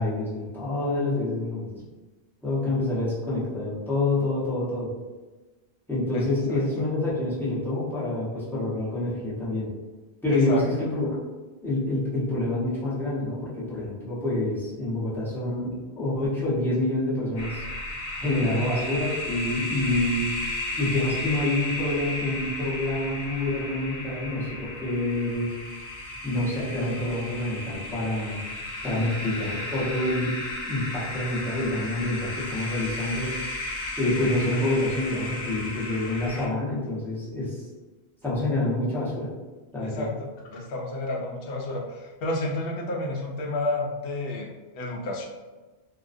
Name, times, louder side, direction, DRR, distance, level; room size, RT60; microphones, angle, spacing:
voice 1, 0.0-1.7 2.4-4.9 5.9-9.7 10.2-11.1 11.6-17.6 18.2-20.3 20.8-25.5 26.2-28.4 28.8-30.3 30.7-33.3 34.0-37.6 38.2-39.3 39.7-40.1, left 2 dB, ahead, -10 dB, 0.6 m, -27 dB
voice 2, 6.1-6.8 10.3-10.6 18.2-18.7 39.8-45.2, left 2 dB, 65° left, -1 dB, 0.7 m, -31 dB
sound 1, 17.4-36.5, left 2 dB, 90° left, 1.0 m, -34 dB
2.4 x 2.1 x 2.4 m, 1.2 s
omnidirectional pair, 1.1 m